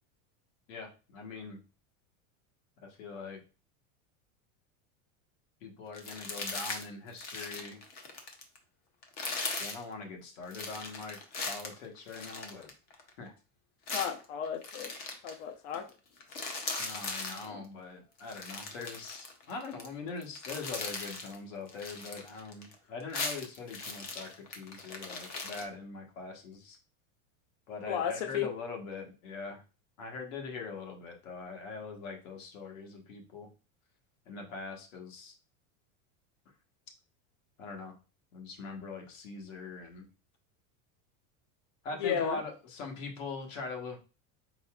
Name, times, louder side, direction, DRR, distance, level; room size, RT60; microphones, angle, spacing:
voice 1, 0.7-1.6 2.8-3.4 5.6-7.8 9.6-11.2 11.4-12.7 13.2-13.3 16.8-26.8 27.7-29.6 30.0-33.5 34.3-35.3 37.6-38.0 38.3-40.1 41.8-44.0, left 4 dB, 75° left, 2 dB, 1.4 m, -42 dB
sound 1, 5.9-6.9 7.1-8.6 9.0-9.8 10.5-13.1 13.9-15.4 15.7-15.9 16.2-17.5 18.2-19.9 20.2-21.4 21.7-22.7 23.0-25.6, left 3 dB, 25° left, 0.5 m, -39 dB
voice 2, 13.9-14.9 15.2-15.8 17.4-17.6 27.9-28.5 42.0-42.4, left 8 dB, 60° left, 6 dB, 0.8 m, -33 dB
4.7 x 4.1 x 2.3 m, 0.33 s
supercardioid pair, 175°, 39 cm